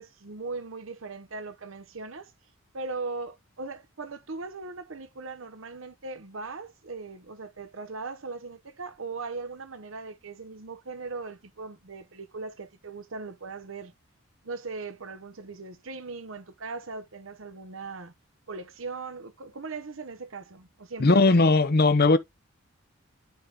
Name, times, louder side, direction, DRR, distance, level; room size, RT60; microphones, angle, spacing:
voice 1, 0.0-2.3 2.7-13.9 14.4-18.1 18.5-21.3, right 3 dB, 70° right, 1.0 m, -39 dB
voice 2, 21.0-22.2, left 3 dB, 50° left, 0.7 m, -18 dB
9.5 x 3.6 x 3.9 m
head